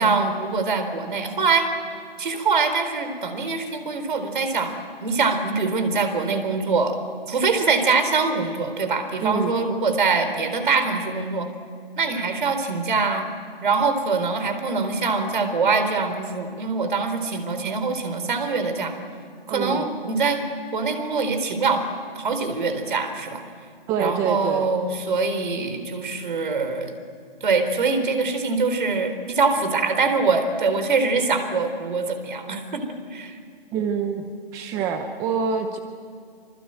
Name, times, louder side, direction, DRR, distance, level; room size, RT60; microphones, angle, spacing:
voice 1, 0.0-1.7 2.2-7.0 7.3-11.5 12.0-13.3 13.6-19.0 19.5-20.4 20.7-21.9 22.2-23.4 24.0-27.0 27.4-33.4, right 4 dB, 55° right, 8 dB, 4.1 m, -23 dB
voice 2, 9.2-9.6 19.5-19.9 23.9-24.7 33.7-35.8, right 6 dB, 10° right, 7 dB, 0.8 m, -26 dB
26.0 x 25.0 x 9.0 m, 2.2 s
hypercardioid pair, 150°, 30 cm